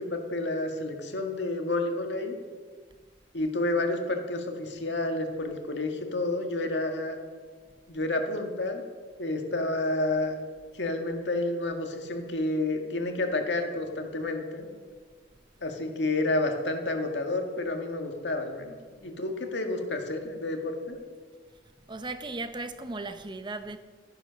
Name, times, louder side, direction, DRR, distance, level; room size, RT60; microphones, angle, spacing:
voice 1, 0.0-2.3 3.3-7.2 7.9-8.8 9.2-10.3 10.7-14.7 15.6-21.0, left 2 dB, 75° left, 1.9 m, -30 dB
voice 2, 21.9-23.8, right 2 dB, 25° right, 0.7 m, -36 dB
13.5 x 9.8 x 6.4 m
head